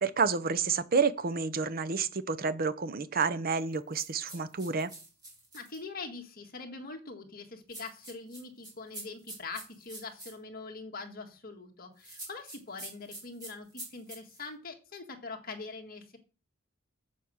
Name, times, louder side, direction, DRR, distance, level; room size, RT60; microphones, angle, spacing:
voice 1, 0.0-4.9, right 5 dB, 45° right, 0.7 m, -29 dB
sound 1, 3.9-5.8 7.7-10.3 12.0-14.5, right 2 dB, 20° right, 4.7 m, -46 dB
voice 2, 5.5-16.2, left 3 dB, 45° left, 1.7 m, -43 dB
7.4 x 7.0 x 6.3 m
head